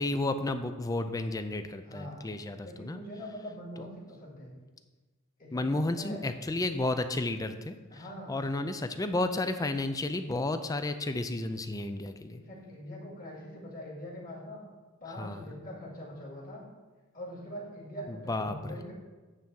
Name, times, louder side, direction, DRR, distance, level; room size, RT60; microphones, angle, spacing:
voice 1, 0.0-3.0 3.8-3.9 5.5-8.0 8.3-12.4 15.1-15.5 18.1-18.8, left 2 dB, 15° left, 9 dB, 0.4 m, -32 dB
voice 2, 1.9-2.3 2.6-4.5 5.4-6.2 7.9-8.4 12.3-14.6 15.0-16.6 17.1-18.9, equal, 40° left, -4 dB, 2.2 m, -43 dB
8.9 x 3.5 x 6.9 m, 1.3 s
head